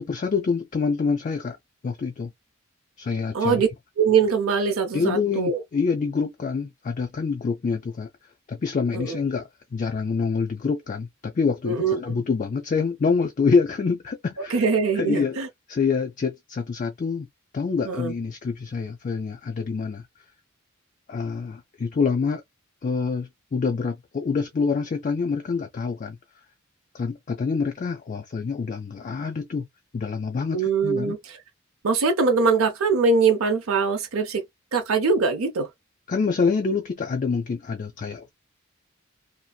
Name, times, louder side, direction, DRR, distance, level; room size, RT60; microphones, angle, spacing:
voice 1, 0.0-1.6 1.8-2.3 3.0-3.6 4.9-8.1 8.5-14.6 14.9-15.4 15.7-17.3 17.5-20.0 21.1-22.4 22.8-26.2 26.9-29.7 29.9-31.2 36.1-38.3, left 5 dB, 35° left, 0.3 m, -26 dB
voice 2, 3.3-3.7 4.0-5.6 8.9-9.2 11.7-12.2 14.5-15.5 17.8-18.1 30.5-31.4 31.8-34.4 34.7-35.7, right 5 dB, 80° right, 0.6 m, -22 dB
2.7 x 2.4 x 2.2 m
head